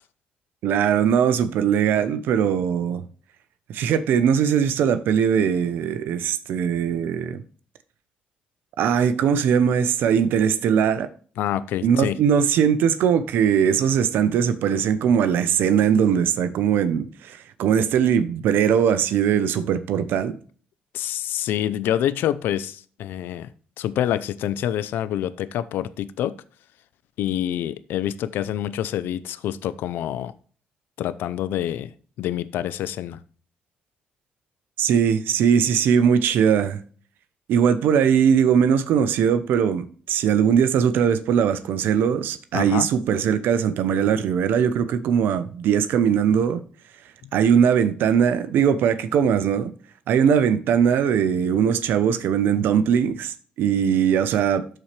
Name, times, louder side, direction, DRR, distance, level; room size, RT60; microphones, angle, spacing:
voice 1, 0.6-3.0 3.7-7.4 8.8-11.1 11.8-20.3 34.8-36.8 37.5-46.6 47.3-49.7 50.1-54.6, right 8 dB, 80° right, 0.8 m, -20 dB
voice 2, 11.4-12.2 20.9-23.5 23.8-26.3 27.2-30.3 31.0-31.9 32.2-33.2 42.5-42.9 47.2-47.3, left 11 dB, 85° left, 0.5 m, -27 dB
12.5 x 4.4 x 3.2 m
cardioid pair, 70°, 3 cm